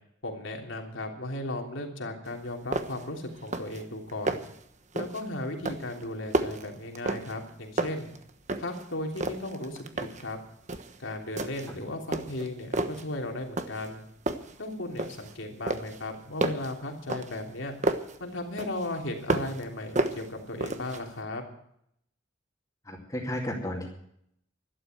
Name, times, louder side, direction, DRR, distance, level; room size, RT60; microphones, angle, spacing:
voice 1, 0.2-4.4 4.9-8.1 8.6-10.4 11.0-14.0 14.6-17.7 18.2-21.4, left 1 dB, 85° left, 2 dB, 3.3 m, -36 dB
sound 1, 2.3-2.4 2.7-3.1 3.4-3.8 4.1-4.6 5.0-5.3 5.6-7.5 7.8-8.8 9.2-10.3 10.7-11.0 11.4-11.8 12.1-13.1 13.6-14.0 14.3-15.3 15.7-18.2 18.6-19.6 20.0-21.0, right 2 dB, 40° right, 1.2 m, -31 dB
voice 2, 22.9-23.9, left 1 dB, 20° left, -4 dB, 2.6 m, -33 dB
12.5 x 12.0 x 7.8 m, 0.72 s
head